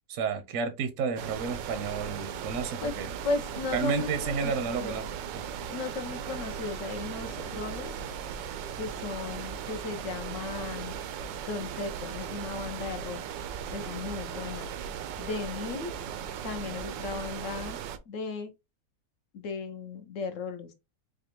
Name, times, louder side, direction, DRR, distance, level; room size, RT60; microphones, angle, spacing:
voice 1, 0.1-3.1 3.7-5.0 5.3-5.4, right 6 dB, 65° right, 0.8 m, -31 dB
sound 1, 1.2-18.0, right 8 dB, 90° right, 1.3 m, -37 dB
voice 2, 3.2-4.9 5.7-8.0 8.8-11.0 11.5-13.2 13.7-14.7 15.2-16.0 16.4-17.8 18.1-18.5 19.3-20.7, left 4 dB, 70° left, 0.7 m, -36 dB
4.8 x 2.3 x 2.9 m
omnidirectional pair, 1.9 m